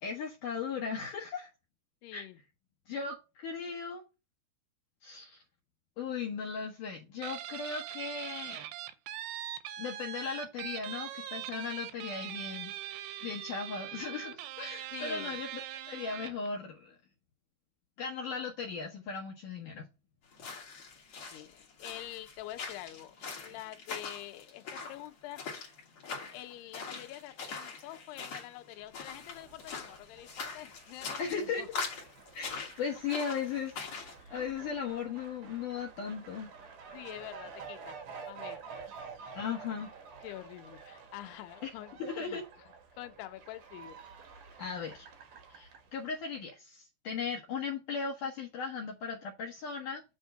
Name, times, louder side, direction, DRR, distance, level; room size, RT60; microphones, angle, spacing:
voice 1, 0.0-1.5 2.1-2.3 2.9-4.0 5.0-5.4 6.0-8.7 9.8-12.7 13.2-15.5 15.9-17.0 18.0-19.9 31.2-31.8 32.3-33.7 34.3-36.5 39.3-39.9 41.6-41.7 42.0-42.4 44.6-45.1 45.5-50.0, left 5 dB, 65° left, 2.3 m, -37 dB
voice 2, 2.0-2.4 14.9-15.4 21.3-25.4 26.3-31.7 32.5-32.7 33.1-33.2 34.2-34.5 36.9-38.0 38.3-38.6 40.2-42.4 43.0-44.0, left 14 dB, 80° left, 2.8 m, -46 dB
Guitar, 7.2-16.5, right 12 dB, 85° right, 2.9 m, -42 dB
sound 1, 20.3-34.2, left 4 dB, 45° left, 2.3 m, -43 dB
Fowl, 29.0-46.3, right 5 dB, 70° right, 1.6 m, -50 dB
7.9 x 3.6 x 6.5 m
omnidirectional pair, 4.8 m